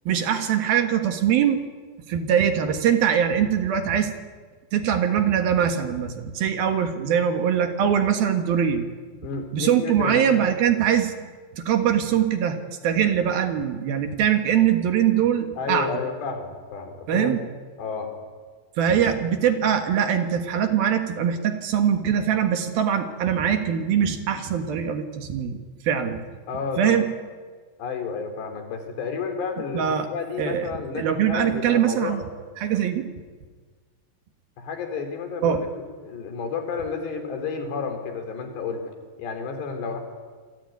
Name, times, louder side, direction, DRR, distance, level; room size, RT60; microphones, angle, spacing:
voice 1, 0.1-1.6 2.1-4.1 4.7-8.9 9.5-11.1 11.6-12.6 12.8-15.9 17.1-17.4 18.8-25.6 25.8-26.2 26.8-27.0 29.7-30.1 30.4-32.2 32.6-33.0 35.4-35.6, right 9 dB, 65° right, 6 dB, 3.2 m, -22 dB
voice 2, 9.2-10.3 15.6-17.4 17.8-18.1 26.5-27.0 27.8-32.2 34.6-38.9 39.2-40.0, left 5 dB, 75° left, 5 dB, 5.8 m, -31 dB
27.5 x 23.0 x 9.5 m, 1.5 s
omnidirectional pair, 5.0 m